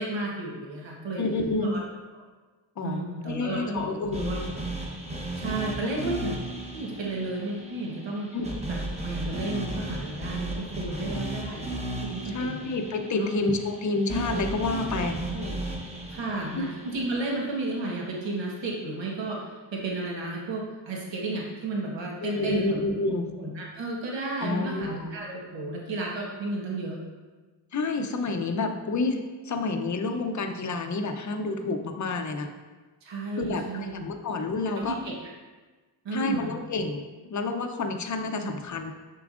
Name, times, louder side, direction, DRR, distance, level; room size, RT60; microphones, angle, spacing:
voice 1, 0.0-1.2 1.6-1.8 2.8-4.4 5.2-6.3 6.7-8.3 8.7-11.6 12.0-12.7 13.2-13.3 14.9-15.5 16.1-22.8 23.4-27.0 33.0-33.9 34.8-35.1 36.0-36.5 38.4-38.5, right 2 dB, 75° right, -2 dB, 1.3 m, -33 dB
voice 2, 1.2-1.8 2.8-4.3 8.3-8.5 12.2-15.2 16.6-16.7 22.2-23.3 24.4-25.1 27.7-32.5 33.4-35.0 36.1-38.9, left 3 dB, 40° left, 6 dB, 0.6 m, -29 dB
sound 1, 4.1-18.3, right 1 dB, 15° right, 0.9 m, -35 dB
7.0 x 6.8 x 2.5 m, 1.3 s
wide cardioid pair, 110°, 45 cm